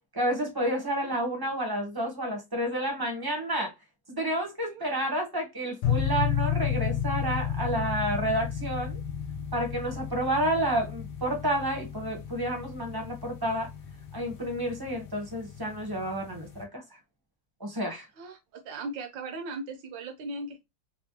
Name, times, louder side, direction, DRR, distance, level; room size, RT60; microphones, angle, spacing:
voice 1, 0.1-3.7 4.1-9.0 9.5-13.7 14.1-16.8 17.6-18.1, right 1 dB, 15° right, 0.8 m, -30 dB
sound 1, 5.8-16.6, left 8 dB, 75° left, 1.3 m, -33 dB
voice 2, 18.2-20.6, right 2 dB, 80° right, 1.6 m, -38 dB
4.2 x 2.3 x 2.8 m
omnidirectional pair, 2.0 m